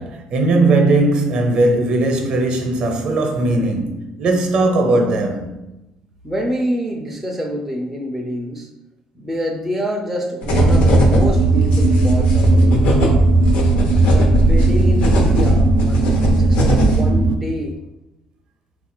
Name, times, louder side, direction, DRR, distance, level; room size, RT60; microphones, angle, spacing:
voice 1, 0.0-5.6, right 2 dB, 50° right, 0.7 m, -18 dB
voice 2, 6.2-8.7 9.1-12.9 14.1-17.8, equal, 5° right, 0.4 m, -27 dB
sound 1, 10.4-17.1, left 1 dB, 80° left, 0.8 m, -19 dB
sound 2, 10.5-17.4, right 2 dB, 80° right, 0.4 m, -16 dB
4.0 x 2.4 x 4.3 m
cardioid pair, 170°, 2 cm